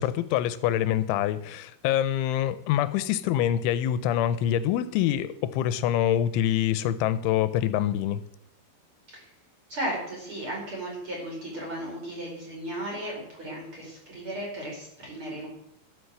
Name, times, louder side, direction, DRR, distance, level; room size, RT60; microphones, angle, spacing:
voice 1, 0.0-8.2, left 11 dB, 85° left, 14 dB, 3.1 m, -25 dB
voice 2, 9.7-15.5, right 1 dB, 25° right, -3 dB, 5.4 m, -35 dB
13.0 x 8.1 x 7.8 m, 0.72 s
omnidirectional pair, 5.4 m